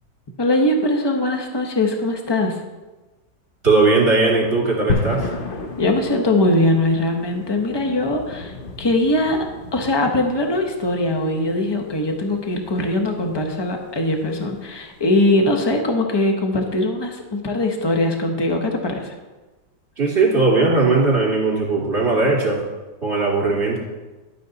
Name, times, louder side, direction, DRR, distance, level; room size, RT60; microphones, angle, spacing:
voice 1, 0.4-2.6 5.8-8.5 8.8-9.4 9.7-19.1, left 1 dB, 20° left, 3 dB, 0.8 m, -21 dB
voice 2, 3.6-5.3 20.0-22.6 23.0-23.8, right 3 dB, 40° right, -3 dB, 2.9 m, -18 dB
sound 1, 4.9-15.1, left 3 dB, 55° left, 0.6 m, -33 dB
11.0 x 8.4 x 4.0 m, 1.2 s
omnidirectional pair, 1.9 m